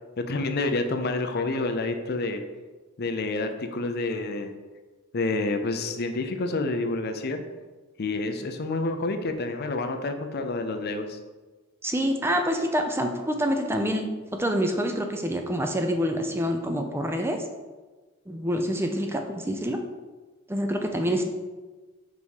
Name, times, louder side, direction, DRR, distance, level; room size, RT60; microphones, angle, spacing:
voice 1, 0.2-2.4 3.0-4.5 5.1-7.4 8.0-11.2, left 2 dB, 50° left, 7 dB, 0.5 m, -28 dB
voice 2, 11.8-14.1 14.4-17.4 18.3-19.8 20.5-21.2, equal, 10° right, 4 dB, 0.5 m, -26 dB
5.3 x 4.2 x 4.7 m, 1.3 s
head